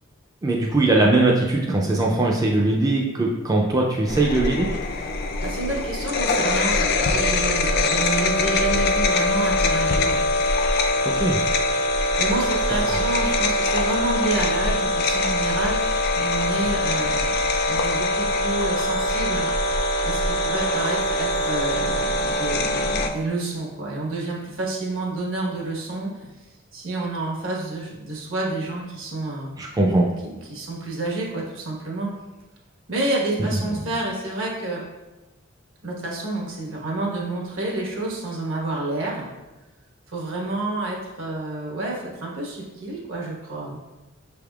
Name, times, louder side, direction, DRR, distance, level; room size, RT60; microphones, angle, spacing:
voice 1, 0.4-4.7 11.0-11.4 12.9-13.0 29.6-30.1 33.4-33.8, right 2 dB, 15° right, -2 dB, 0.3 m, -21 dB
sound 1, 4.1-23.1, left 2 dB, 50° left, 0.4 m, -23 dB
voice 2, 5.4-10.2 12.2-19.5 20.0-26.3 26.7-29.5 30.2-32.1 32.9-34.8 35.8-39.3 40.1-43.8, right 2 dB, 70° right, -3 dB, 1.2 m, -29 dB
6.3 x 3.4 x 2.3 m, 1.1 s
head